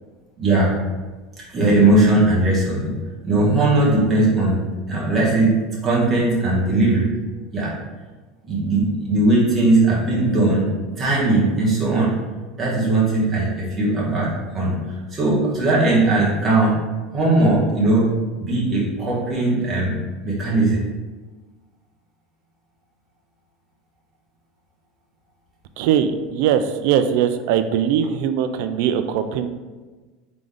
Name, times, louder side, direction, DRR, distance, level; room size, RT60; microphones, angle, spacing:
voice 1, 0.4-0.8 1.5-2.9 3.2-5.6 5.8-7.1 7.5-7.7 8.4-10.7 11.0-12.1 12.6-14.8 15.1-16.8 17.1-19.9 20.2-20.8, right 2 dB, 20° right, -6 dB, 1.3 m, -19 dB
voice 2, 25.8-29.5, right 8 dB, 65° right, 9 dB, 0.3 m, -20 dB
3.8 x 3.7 x 3.4 m, 1.3 s
supercardioid pair, 150°, 0 cm